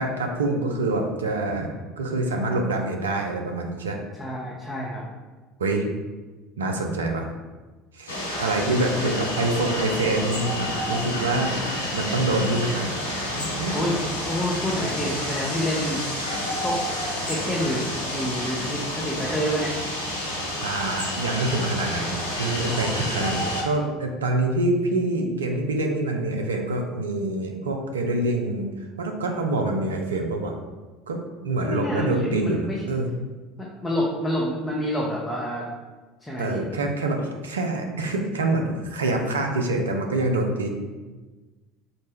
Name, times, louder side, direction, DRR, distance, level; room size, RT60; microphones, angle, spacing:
voice 1, 0.0-4.0 5.6-6.0 6.6-7.3 7.9-11.6 11.9-13.0 13.5-13.8 20.6-28.7 29.0-30.6 31.1-33.1 36.4-40.7, right 2 dB, 75° right, 3 dB, 0.4 m, -26 dB
voice 2, 4.2-5.1 8.9-9.2 13.7-14.0 14.3-16.0 16.6-16.8 17.3-19.7 22.7-23.5 31.6-32.8 33.6-35.6 36.2-36.6, equal, 10° left, -5 dB, 0.6 m, -28 dB
sound 1, 8.1-23.6, left 1 dB, 80° left, 0.5 m, -29 dB
3.8 x 2.1 x 3.4 m, 1.3 s
figure-of-eight pair, 65°, 0 cm